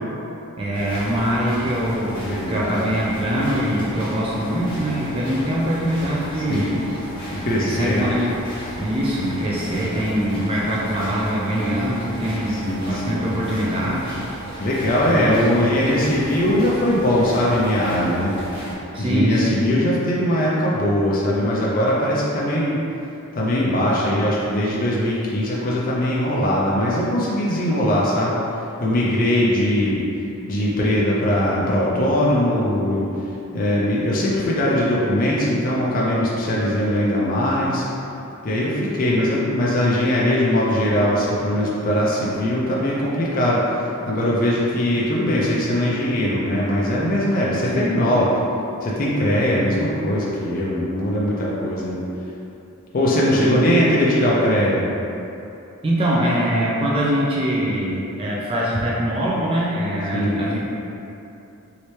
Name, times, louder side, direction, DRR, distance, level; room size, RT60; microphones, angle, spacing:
voice 1, 0.6-6.8 7.6-8.3 8.7-14.1 14.5-14.7 15.0-15.8 18.9-19.7 47.7-47.9 53.3-53.6 55.8-60.6, equal, 25° right, -5 dB, 0.4 m, -23 dB
sound 1, 0.7-18.7, right 1 dB, 20° left, 0.8 m, -35 dB
voice 2, 2.2-2.9 6.5-6.7 7.3-8.1 12.5-13.3 14.6-18.3 18.7-22.8 23.3-28.3 28.8-30.0 30.5-37.8 38.4-48.3 48.8-52.0 52.9-54.8 60.1-60.4, left 1 dB, 40° left, -6 dB, 0.4 m, -21 dB
3.1 x 2.8 x 3.1 m, 2.9 s
head